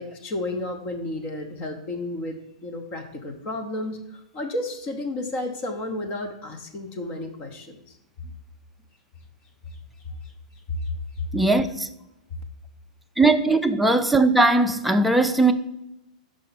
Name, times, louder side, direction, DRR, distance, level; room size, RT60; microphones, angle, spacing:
voice 1, 0.0-8.0 10.2-10.3 10.8-10.9, left 1 dB, 35° left, 0.9 m, -32 dB
voice 2, 11.3-11.9 13.2-15.5, right 2 dB, ahead, 0.4 m, -19 dB
5.5 x 5.0 x 4.1 m
hypercardioid pair, 140°, 4 cm